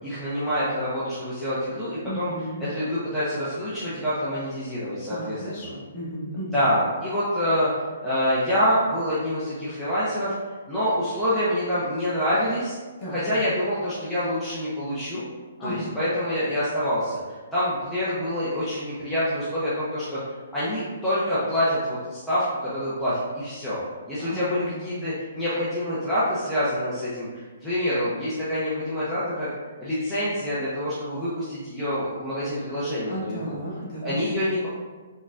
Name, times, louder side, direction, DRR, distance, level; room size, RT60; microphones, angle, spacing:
voice 1, 0.0-2.3 2.6-5.7 6.5-7.7 8.0-10.3 10.7-12.8 13.1-15.2 15.6-17.2 17.5-20.2 20.5-23.8 24.1-29.5 29.8-33.6 34.0-34.7, equal, ahead, -13 dB, 0.6 m, -26 dB
voice 2, 2.0-2.7 5.1-6.6 13.0-13.3 15.6-15.9 24.2-24.8 33.1-34.2, equal, 30° left, -7 dB, 1.1 m, -34 dB
4.2 x 2.2 x 2.5 m, 1.3 s
hypercardioid pair, 165°, 0 cm